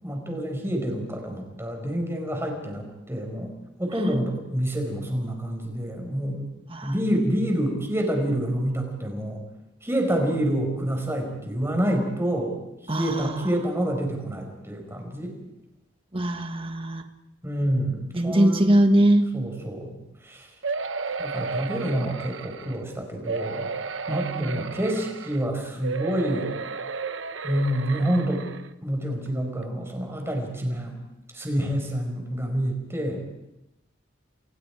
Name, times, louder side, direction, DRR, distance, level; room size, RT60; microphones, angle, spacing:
voice 1, 0.0-3.5 3.8-6.5 6.8-9.4 9.8-12.5 12.8-15.4 17.4-18.7 19.3-20.5 21.2-23.8 24.1-26.5 27.4-28.5 28.8-30.9 31.3-33.2, right 1 dB, 15° right, 2 dB, 5.5 m, -27 dB
voice 2, 12.9-13.5 16.1-17.1 18.1-19.3 24.1-24.7, right 1 dB, 30° right, 7 dB, 1.7 m, -22 dB
sound 1, 20.6-22.8 23.3-25.4 25.8-28.7 29.3-29.4 29.6-29.7, right 4 dB, 70° right, 1.0 m, -33 dB
29.5 x 28.0 x 4.9 m, 0.89 s
head